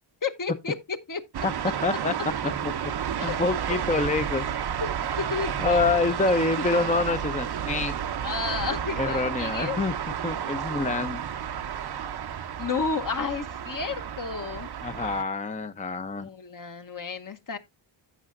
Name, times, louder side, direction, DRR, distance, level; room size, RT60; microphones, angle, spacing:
voice 1, 0.2-1.2 3.2-3.4 3.9-4.0 4.8-4.9 5.2-5.8 8.2-9.8 12.6-14.7 16.2-17.6, left 5 dB, 45° left, 1.0 m, -32 dB
sound 1, 1.3-15.2, right 8 dB, 55° right, 0.7 m, -31 dB
voice 2, 1.8-2.1 2.6-2.9 3.2-4.4 5.6-7.9 9.0-9.9 10.2-11.2 14.8-16.3, left 3 dB, 15° left, 0.6 m, -26 dB
sound 2, 2.6-9.0, equal, 90° left, 5.5 m, -55 dB
15.0 x 5.6 x 2.5 m
cardioid pair, 75°, 47 cm